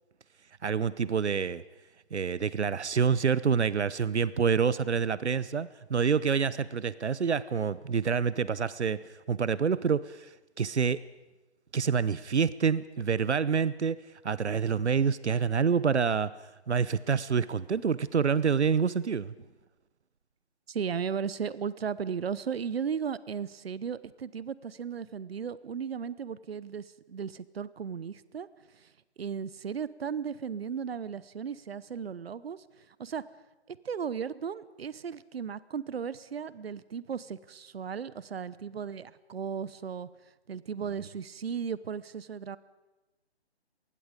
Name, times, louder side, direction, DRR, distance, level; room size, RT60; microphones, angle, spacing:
voice 1, 0.6-1.6 2.1-9.0 9.3-10.3 10.6-11.0 11.7-14.0 14.2-16.3 16.7-19.3, right 6 dB, 90° right, 18 dB, 0.9 m, -27 dB
voice 2, 20.7-28.5 28.7-28.9 29.2-33.2 33.7-40.1 40.5-42.6, right 7 dB, 65° right, 18 dB, 0.9 m, -36 dB
26.0 x 20.0 x 5.2 m, 1.1 s
hypercardioid pair, 155°, 33 cm